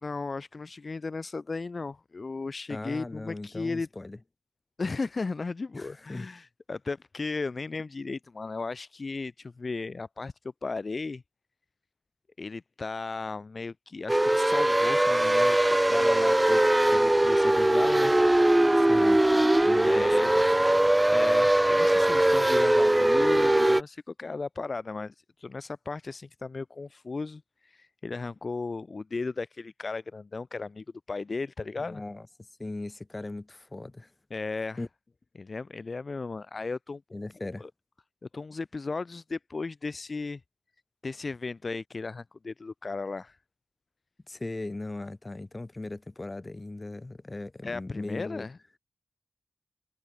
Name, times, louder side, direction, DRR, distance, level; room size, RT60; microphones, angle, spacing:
voice 1, 0.0-3.9 4.8-10.3 10.6-11.2 12.4-18.1 19.8-20.3 21.1-32.0 34.3-34.8 35.3-37.0 37.6-37.7 38.3-40.4 41.0-43.4 47.6-48.8, left 3 dB, 50° left, 3.7 m, -35 dB
voice 2, 2.7-4.2 5.7-6.3 18.8-19.2 19.6-20.4 31.9-32.3 32.6-34.1 34.8-34.9 37.1-37.7 44.3-48.5, left 2 dB, 30° left, 5.1 m, -38 dB
sound 1, 14.1-23.8, right 1 dB, 15° right, 0.5 m, -21 dB
wide cardioid pair, 70°, 0 cm